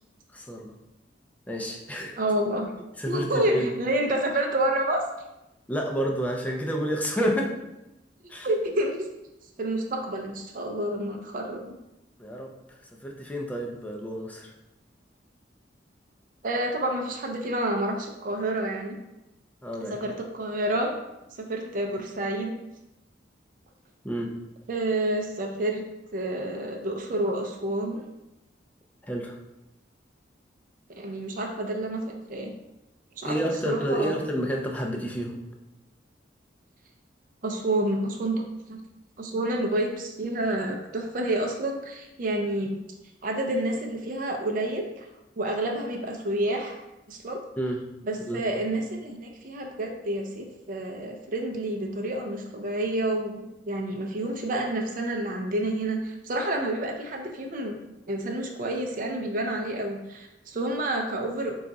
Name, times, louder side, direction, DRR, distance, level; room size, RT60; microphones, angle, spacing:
voice 1, 0.3-0.7 1.5-2.2 3.0-3.7 5.7-7.5 8.3-8.5 12.2-14.5 19.6-20.0 24.0-24.4 29.0-29.4 33.2-35.4 47.6-47.9 48.3-48.5, equal, 10° left, 0 dB, 0.4 m, -30 dB
voice 2, 2.2-2.7 3.1-5.0 8.4-8.9 9.6-11.8 16.4-19.0 19.9-20.9 21.4-22.6 24.7-25.8 26.1-28.0 30.9-32.5 33.2-33.4 33.6-34.2 37.4-38.8 39.2-42.8 43.2-45.1 45.4-47.4 48.0-57.8 58.1-61.5, right 1 dB, 45° right, 2 dB, 0.5 m, -29 dB
3.7 x 2.3 x 4.0 m, 0.93 s
head